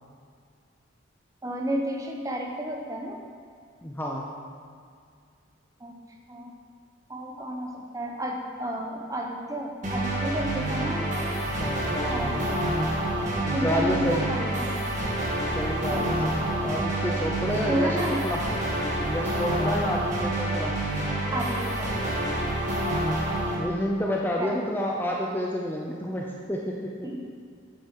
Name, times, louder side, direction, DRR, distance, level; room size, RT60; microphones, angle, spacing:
voice 1, 1.4-3.2 5.8-5.9 6.3-6.5 7.1-11.4 12.1-12.4 13.5-14.8 15.9-16.3 17.7-18.2 21.3-22.1 24.4-24.6 27.0-27.2, right 1 dB, 15° right, 1 dB, 0.9 m, -31 dB
voice 2, 3.8-4.2 11.5-12.9 13.4-14.3 15.5-18.4 19.0-20.8 23.6-27.2, equal, 10° left, -2 dB, 0.6 m, -30 dB
sound 1, 9.8-23.6, right 1 dB, 40° right, 1.8 m, -28 dB
8.3 x 7.7 x 4.7 m, 2.2 s
head